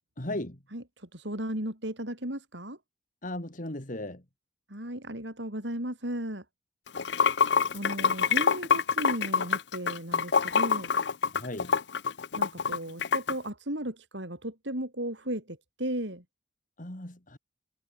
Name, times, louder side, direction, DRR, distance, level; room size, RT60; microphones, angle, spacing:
voice 1, 0.2-0.6 3.2-4.2 11.3-11.8 16.8-17.4, left 1 dB, 45° left, 2.8 m, -36 dB
voice 2, 0.7-2.8 4.7-6.4 7.7-10.9 12.4-16.2, right 1 dB, 75° right, 7.6 m, -35 dB
Water / Sink (filling or washing), 6.9-13.3, left 6 dB, 70° left, 0.7 m, -26 dB
head